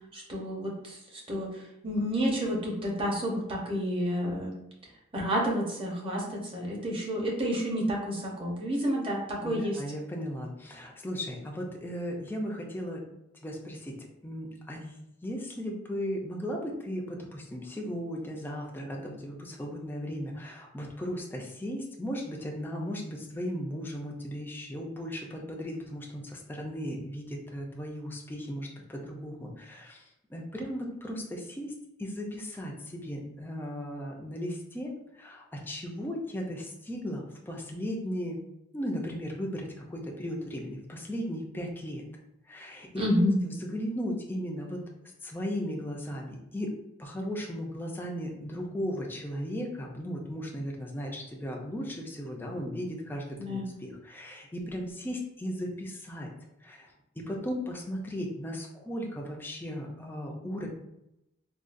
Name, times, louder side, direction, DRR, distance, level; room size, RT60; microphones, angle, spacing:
voice 1, 0.1-1.0 1.3-4.5 5.1-9.8 42.9-43.4 53.4-53.7, equal, 30° right, -3 dB, 0.8 m, -30 dB
voice 2, 9.4-13.1 13.4-14.9 15.2-31.7 32.0-38.4 38.7-42.0 42.5-44.9 45.2-56.3 56.6-56.9 57.2-60.7, equal, 10° left, 0 dB, 0.5 m, -36 dB
3.7 x 2.3 x 2.5 m, 0.85 s
head